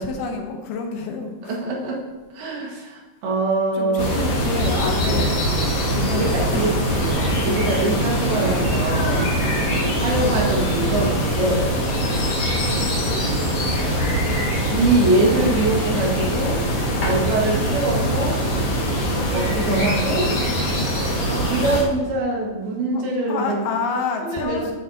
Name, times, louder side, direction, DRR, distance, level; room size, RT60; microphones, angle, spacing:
voice 1, 0.0-1.6 3.7-5.3 5.9-7.3 10.1-10.5 13.0-13.4 18.5-18.9 22.9-23.0 23.3-24.7, left 5 dB, 80° left, 3 dB, 3.0 m, -29 dB
voice 2, 1.4-2.0 2.3-4.1 5.0-5.3 6.1-9.3 9.9-11.7 13.8-14.1 14.7-16.7 17.0-18.4 19.3-20.3 21.3-23.7 24.2-24.7, right 2 dB, 75° right, -3 dB, 3.8 m, -23 dB
sound 1, 4.0-21.8, equal, 50° left, 2.9 m, -22 dB
Electric guitar / Strum, 9.0-18.8, left 3 dB, 5° left, 1.7 m, -40 dB
13.5 x 8.5 x 2.9 m, 1.2 s
omnidirectional pair, 4.4 m